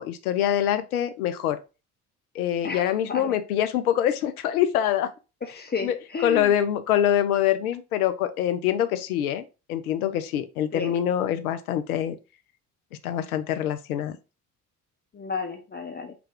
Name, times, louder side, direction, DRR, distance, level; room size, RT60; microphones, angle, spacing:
voice 1, 0.0-1.6 2.3-5.1 5.8-6.0 6.2-12.2 13.0-14.2, left 10 dB, 80° left, 0.5 m, -25 dB
voice 2, 2.6-3.4 5.4-6.5 10.7-10.9 15.1-16.2, left 4 dB, 20° left, 0.7 m, -32 dB
5.8 x 2.3 x 3.6 m
figure-of-eight pair, 45°, 44 cm